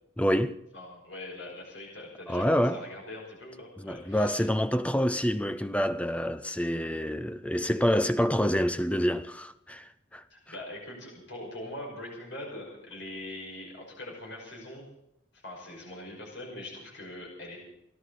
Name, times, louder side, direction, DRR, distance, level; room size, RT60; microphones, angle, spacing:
voice 1, 0.2-0.6 2.3-2.8 3.8-10.2, equal, 5° left, 0.6 m, -27 dB
voice 2, 0.7-4.5 10.3-14.8 15.3-17.6, left 1 dB, 65° left, 5.6 m, -42 dB
30.0 x 11.0 x 4.2 m
head